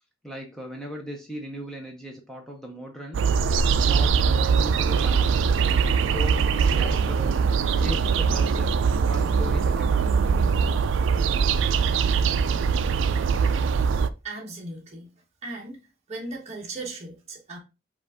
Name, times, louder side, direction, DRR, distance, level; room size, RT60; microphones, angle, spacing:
voice 1, 0.2-3.2 3.5-5.5 6.0-7.4 7.8-8.7 9.0-10.1, equal, ahead, 0.7 m, -38 dB
sound 1, 3.1-14.1, right 5 dB, 65° right, 0.3 m, -22 dB
voice 2, 14.2-15.1 15.4-15.8 16.1-17.6, right 2 dB, 35° right, 1.0 m, -37 dB
5.2 x 2.5 x 3.5 m
head